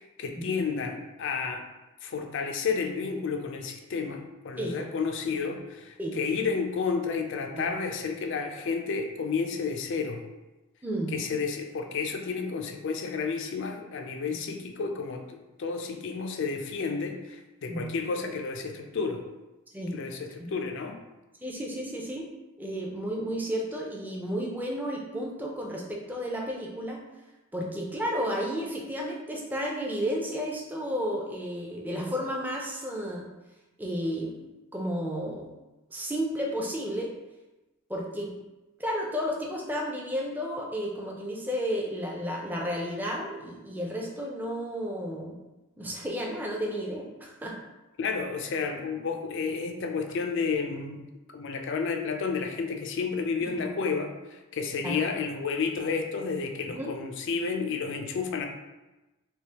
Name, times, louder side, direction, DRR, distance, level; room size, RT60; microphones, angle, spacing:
voice 1, 0.2-1.6 2.0-10.2 11.1-19.2 19.9-21.0 48.0-51.0 51.3-58.5, left 5 dB, 55° left, 4 dB, 0.4 m, -31 dB
voice 2, 10.8-11.2 14.3-14.5 17.7-17.9 19.7-20.0 20.4-20.5 21.4-22.3 22.6-27.0 27.5-33.3 33.8-34.4 34.7-35.5 35.9-37.1 37.9-38.3 38.8-45.4 45.8-47.6 53.4-53.6 54.8-55.0 56.7-57.0, equal, 10° right, -1 dB, 0.4 m, -32 dB
3.3 x 2.8 x 2.8 m, 1.1 s
head